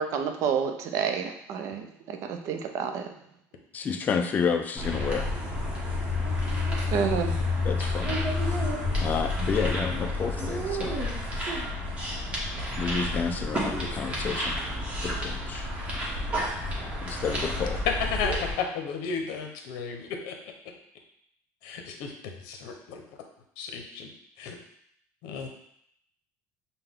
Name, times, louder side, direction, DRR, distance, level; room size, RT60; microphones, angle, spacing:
voice 1, 0.0-3.1 6.9-7.3, right 6 dB, 55° right, 6 dB, 0.5 m, -29 dB
voice 2, 3.7-5.3 7.6-8.2 9.0-11.0 12.8-14.6 15.0-15.7 17.0-17.8, left 6 dB, 25° left, 5 dB, 0.4 m, -30 dB
sound 1, 4.8-18.5, left 2 dB, 20° right, 1.1 m, -30 dB
voice 3, 17.9-20.4 21.6-23.0 23.6-24.1 24.4-24.6 25.2-25.5, left 6 dB, 75° left, 3 dB, 0.8 m, -33 dB
5.6 x 2.2 x 3.6 m, 0.71 s
cardioid pair, 150°, 7 cm